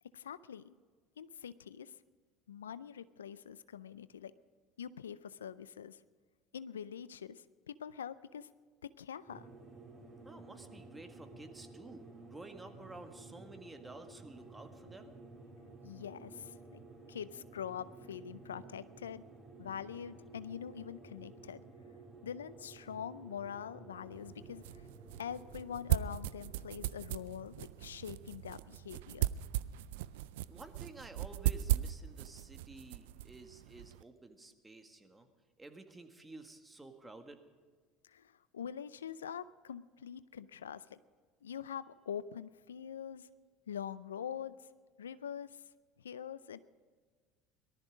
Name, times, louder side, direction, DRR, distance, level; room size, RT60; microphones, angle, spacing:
voice 1, 0.1-0.8 1.2-1.9 2.5-4.3 4.8-6.0 6.5-8.5 9.0-9.5 15.8-16.8 17.1-19.3 19.6-21.6 22.2-24.8 25.2-29.3 38.0-41.0 41.4-43.3 43.7-44.7 45.0-45.7 46.0-46.6, left 8 dB, 90° left, 16 dB, 0.4 m, -44 dB
sound 1, 9.3-28.8, right 3 dB, 30° right, 4.9 m, -54 dB
voice 2, 10.2-15.2 30.5-35.3 35.6-37.4, right 2 dB, 15° right, 6 dB, 1.8 m, -52 dB
sound 2, 24.1-34.0, right 14 dB, 75° right, 0.4 m, -38 dB
18.5 x 13.0 x 5.1 m, 1.5 s
hypercardioid pair, 70°, 0 cm